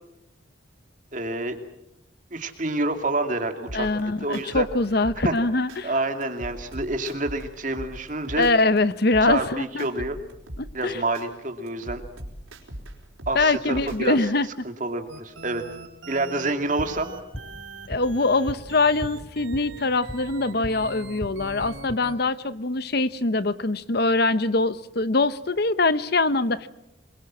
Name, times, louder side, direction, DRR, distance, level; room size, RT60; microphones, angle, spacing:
voice 1, 1.1-1.6 2.3-4.7 5.2-5.3 5.8-8.5 9.2-10.2 10.7-12.0 13.3-14.2 14.6-15.6 16.1-17.1, right 2 dB, 40° right, 6 dB, 2.6 m, -28 dB
sound 1, 3.6-5.8 6.2-8.8 9.1-11.3 11.7-14.2, equal, 90° right, 4.8 m, -41 dB
voice 2, 3.7-5.9 8.4-9.9 10.6-11.0 13.3-14.7 17.9-26.7, left 2 dB, 50° left, 14 dB, 0.9 m, -23 dB
sound 2, 15.1-22.1, right 3 dB, 75° right, 4.6 m, -42 dB
sound 3, 16.8-20.8 21.1-21.9, equal, 10° left, 3.6 m, -39 dB
26.5 x 22.0 x 7.6 m, 0.84 s
head